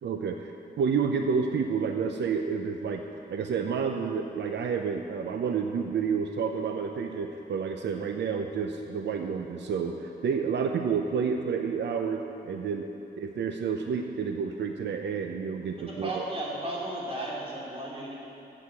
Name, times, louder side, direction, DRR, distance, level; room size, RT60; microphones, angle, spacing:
voice 1, 0.0-3.0 3.3-12.9 13.2-16.2, right 6 dB, 85° right, 4 dB, 0.7 m, -30 dB
voice 2, 15.7-18.2, right 1 dB, 35° right, -5 dB, 3.4 m, -35 dB
13.0 x 7.8 x 7.8 m, 2.9 s
wide cardioid pair, 140°, 18 cm